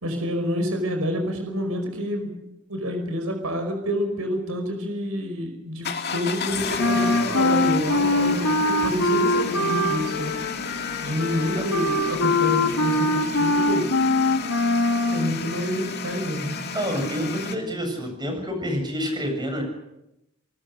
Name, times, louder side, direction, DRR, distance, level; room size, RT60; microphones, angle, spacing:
voice 1, 0.0-2.4 2.7-10.3 11.0-13.9 15.1-16.6 17.2-17.3, equal, 80° right, 4 dB, 5.2 m, -28 dB
sound 1, 5.8-17.5, left 5 dB, 50° left, 2.2 m, -32 dB
Wind instrument woodwind instrument, 6.8-15.4, left 2 dB, 75° left, 2.0 m, -23 dB
voice 2, 16.7-19.6, equal, 20° right, 4 dB, 7.4 m, -28 dB
28.5 x 20.0 x 6.6 m, 0.90 s
head